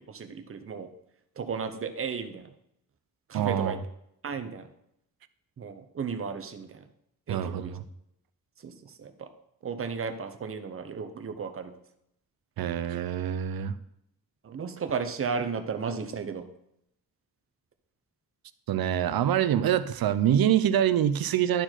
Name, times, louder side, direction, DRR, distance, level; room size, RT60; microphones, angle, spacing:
voice 1, 0.1-0.9 1.4-2.5 3.3-3.8 4.2-4.6 5.6-6.8 7.3-7.8 8.6-8.7 9.0-9.3 9.6-11.7 14.4-16.4, right 5 dB, 40° right, 7 dB, 0.7 m, -34 dB
voice 2, 3.3-3.8 7.3-7.8 12.6-13.7 18.7-21.6, right 10 dB, 85° right, 13 dB, 0.6 m, -25 dB
11.5 x 4.5 x 4.4 m, 0.79 s
wide cardioid pair, 160°, 35 cm